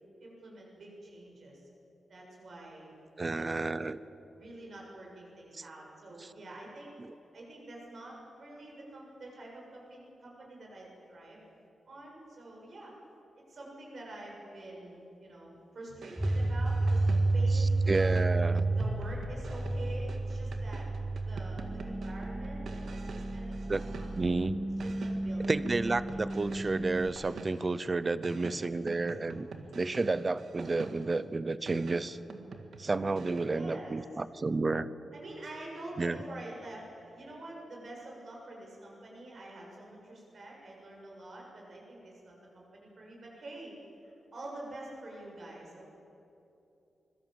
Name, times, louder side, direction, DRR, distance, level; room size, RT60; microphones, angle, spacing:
voice 1, 0.2-1.6 2.1-2.9 3.3-3.8 4.3-6.9 7.3-11.4 11.9-12.9 13.5-18.2 18.7-24.1 24.8-26.3 28.4-29.7 33.4-34.0 35.1-43.8 44.0-45.9, right 1 dB, 50° right, -2 dB, 7.2 m, -47 dB
voice 2, 3.2-4.0 5.5-5.6 6.2-6.3 17.5-18.6 23.7-23.8 24.2-24.6 25.5-29.5 29.7-32.2 32.8-34.9 36.0-36.2, right 3 dB, 25° right, 16 dB, 0.7 m, -31 dB
sound 1, 15.9-17.5 17.9-24.4 24.8-27.8 28.2-31.2 31.7-33.7, right 4 dB, 65° right, 1.9 m, -47 dB
sound 2, 16.2-27.1, right 2 dB, 5° right, 1.3 m, -31 dB
25.0 x 22.5 x 7.7 m, 2.9 s
wide cardioid pair, 175°, 0 cm